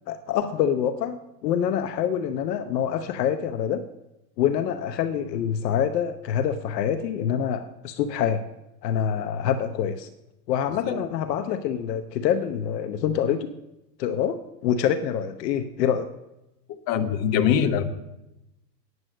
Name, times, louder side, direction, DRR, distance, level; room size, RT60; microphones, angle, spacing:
voice 1, 0.1-3.8 4.4-8.4 8.8-10.1 10.5-13.5 14.0-16.1, left 9 dB, 75° left, 10 dB, 0.9 m, -26 dB
voice 2, 16.7-17.8, left 8 dB, 45° left, 8 dB, 1.3 m, -23 dB
9.5 x 7.8 x 7.6 m, 0.91 s
hypercardioid pair, 115°, 50 cm